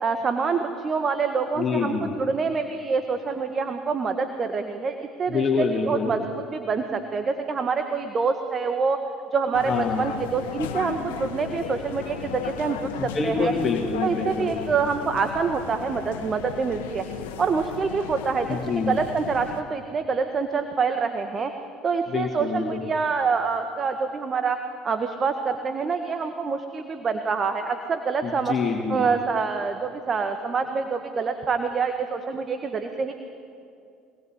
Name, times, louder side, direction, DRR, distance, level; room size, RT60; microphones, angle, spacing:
voice 1, 0.0-6.2 6.5-9.0 9.3-9.7 10.0-13.5 14.0-17.0 17.4-18.6 18.9-21.5 21.8-24.6 24.8-28.5 28.9-33.1, right 5 dB, 35° right, 7 dB, 1.7 m, -26 dB
voice 2, 1.6-2.1 5.3-6.1 9.7-10.1 13.0-14.5 18.5-19.0 22.1-22.8 28.2-29.0, left 5 dB, 35° left, 1 dB, 2.6 m, -26 dB
sound 1, 9.5-19.6, left 7 dB, 75° left, 1.4 m, -36 dB
24.5 x 20.0 x 9.0 m, 2.5 s
hypercardioid pair, 65°, 0 cm